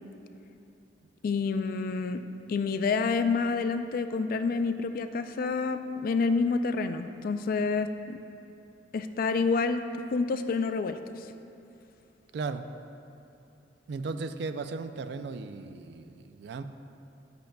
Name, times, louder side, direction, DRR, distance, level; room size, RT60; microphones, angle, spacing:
voice 1, 1.2-2.2 2.5-8.2 8.9-9.8 10.1-11.0, left 4 dB, 50° left, 9 dB, 0.3 m, -28 dB
voice 2, 12.3-12.7 13.9-16.6, right 4 dB, 65° right, 10 dB, 0.3 m, -36 dB
10.5 x 7.7 x 2.3 m, 2.7 s
head